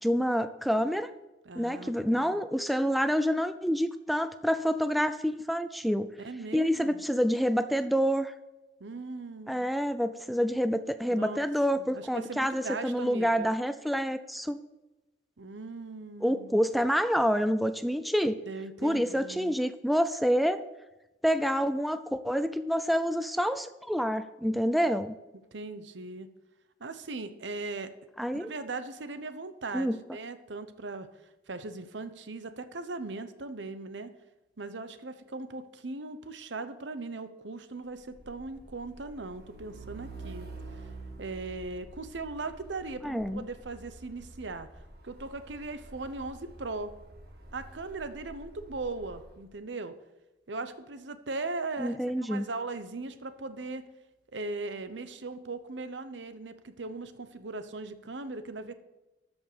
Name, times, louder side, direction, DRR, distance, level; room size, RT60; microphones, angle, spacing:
voice 1, 0.0-1.1 1.6-6.1 6.5-8.3 9.5-14.6 16.2-18.4 18.8-20.6 21.2-25.1 28.2-28.5 29.7-30.0 43.0-43.4 51.8-52.5, equal, ahead, 10 dB, 0.4 m, -27 dB
voice 2, 1.5-2.4 6.2-7.0 8.8-9.6 11.1-11.4 11.7-13.5 15.4-16.6 18.4-19.5 25.5-26.3 26.8-27.9 28.3-31.1 31.5-34.1 34.6-40.5 40.7-40.8 41.2-44.7 45.0-46.9 47.5-49.9 50.5-52.0 52.3-53.8 54.3-58.7, right 3 dB, 85° right, 11 dB, 0.9 m, -39 dB
Truck, 38.0-49.4, right 2 dB, 60° right, 1.9 m, -48 dB
13.0 x 5.4 x 6.8 m, 1.0 s
head